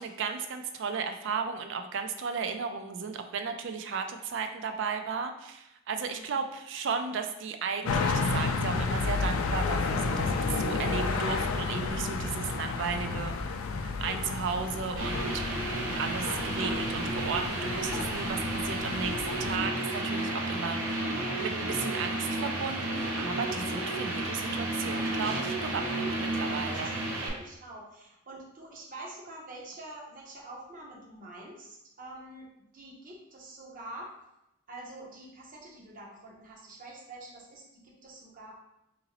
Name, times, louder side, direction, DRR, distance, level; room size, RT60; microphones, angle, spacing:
voice 1, 0.0-13.3 13.8-15.4 16.0-20.8 21.4-26.9, right 5 dB, 60° right, 7 dB, 0.4 m, -34 dB
sound 1, 7.8-19.6, left 4 dB, 80° left, 0.3 m, -31 dB
sound 2, 15.0-27.3, right 1 dB, 75° right, 0.8 m, -32 dB
voice 2, 27.2-32.5 32.7-34.1 34.7-38.6, right 2 dB, 40° right, -2 dB, 0.7 m, -46 dB
3.8 x 2.6 x 2.9 m, 0.87 s
head